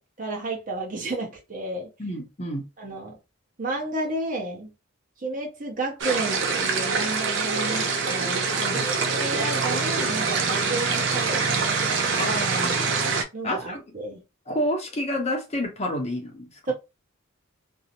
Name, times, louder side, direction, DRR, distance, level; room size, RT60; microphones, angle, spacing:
voice 1, 0.0-1.9 2.8-3.2 3.6-4.7 5.2-11.9 13.3-14.2 16.7-16.8, right 2 dB, 40° right, 0.8 m, -32 dB
voice 2, 2.0-2.7 8.6-8.8 12.2-12.9 13.4-13.8 14.5-16.7, left 1 dB, 30° left, 0.6 m, -29 dB
sound 1, 6.0-13.2, right 4 dB, 60° right, 0.5 m, -25 dB
2.6 x 2.1 x 2.8 m
head